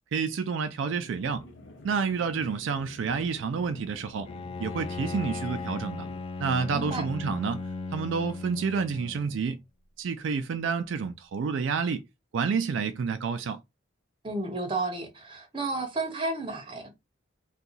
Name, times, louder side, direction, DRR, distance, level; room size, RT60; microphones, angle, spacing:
voice 1, 0.1-1.5 1.8-4.3 4.6-6.1 6.4-7.6 7.9-9.6 10.0-12.0 12.3-13.6, right 5 dB, 70° right, 0.3 m, -29 dB
sound 1, 0.8-6.2, left 1 dB, 65° left, 0.6 m, -48 dB
Bowed string instrument, 4.2-9.6, left 3 dB, 30° left, 0.3 m, -37 dB
voice 2, 6.7-7.0 14.2-16.9, right 2 dB, 25° right, 0.8 m, -32 dB
2.7 x 2.3 x 3.9 m
head